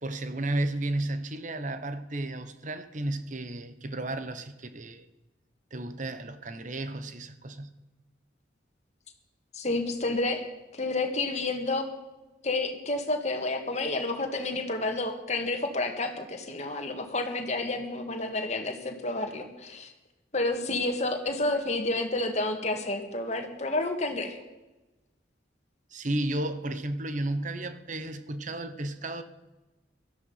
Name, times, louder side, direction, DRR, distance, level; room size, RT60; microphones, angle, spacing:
voice 1, 0.0-5.1 5.7-7.7 25.9-29.2, right 1 dB, 40° right, 1.2 m, -33 dB
voice 2, 9.5-10.4 10.7-11.9 12.4-19.9 20.3-24.3, left 2 dB, 35° left, 2.1 m, -30 dB
17.5 x 13.0 x 5.8 m
head